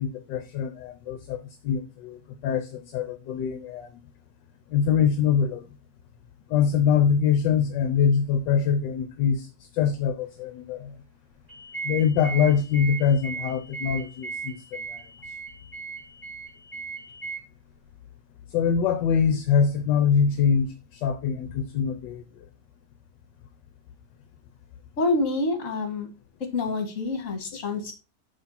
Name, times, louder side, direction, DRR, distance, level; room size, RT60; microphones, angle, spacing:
voice 1, 0.0-3.9 4.7-5.6 6.5-9.5 9.7-10.9 11.8-14.5 14.9-15.0 18.5-22.2, left 7 dB, 70° left, 1.3 m, -24 dB
sound 1, 11.5-17.4, right 5 dB, 15° right, 3.2 m, -37 dB
voice 2, 25.0-26.1 26.4-27.9, left 2 dB, 40° left, 2.0 m, -27 dB
6.4 x 5.8 x 4.1 m
omnidirectional pair, 2.2 m